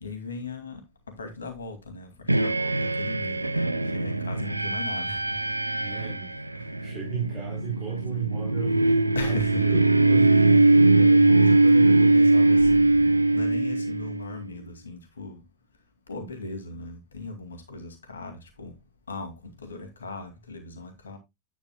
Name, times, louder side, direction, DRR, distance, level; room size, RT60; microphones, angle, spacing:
voice 1, 0.0-0.8 1.1-3.7 3.9-5.4 6.6-6.7 9.1-9.8 10.4-15.4 16.1-18.7 19.1-21.2, left 3 dB, 70° left, 2.3 m, -38 dB
sound 1, 2.3-14.3, right 2 dB, 85° right, 0.5 m, -21 dB
voice 2, 5.8-9.8 10.1-11.0, right 9 dB, 30° right, 3.4 m, -36 dB
10.5 x 8.1 x 2.2 m
figure-of-eight pair, 90°, 0 cm